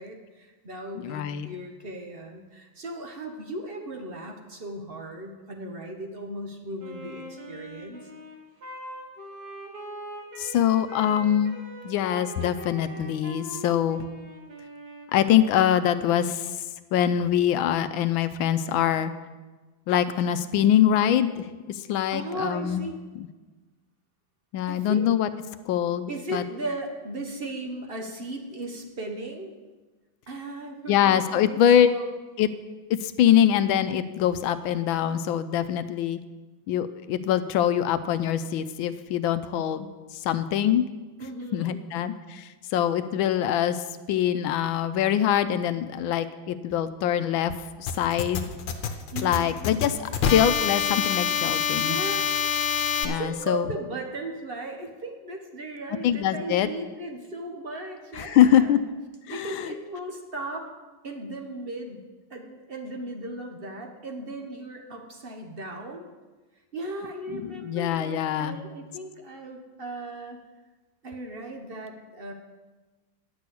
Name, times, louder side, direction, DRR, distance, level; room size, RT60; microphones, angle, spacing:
voice 1, 0.0-8.0 22.1-22.9 24.7-25.1 26.1-29.5 30.3-32.1 41.2-41.8 49.1-49.5 51.8-52.3 53.1-58.7 59.3-60.7 61.0-62.0 62.3-66.1 66.7-70.4 71.0-72.3, right 1 dB, 35° right, 2 dB, 1.1 m, -37 dB
voice 2, 1.0-1.5 10.4-11.6 11.8-14.0 15.1-16.6 16.9-19.1 19.9-22.9 23.2-23.3 24.5-25.3 25.7-26.4 30.9-31.9 32.4-32.5 32.9-36.2 36.7-40.8 41.5-48.5 49.2-52.0 53.0-53.7 56.0-56.7 58.1-58.8 59.3-59.7 67.3-68.6, left 10 dB, 90° left, 11 dB, 1.4 m, -24 dB
Wind instrument woodwind instrument, 6.8-15.8, equal, 50° right, 2.1 m, -42 dB
sound 1, 47.9-53.1, left 7 dB, 70° left, 1.5 m, -26 dB
10.5 x 6.3 x 8.3 m, 1.3 s
omnidirectional pair, 2.1 m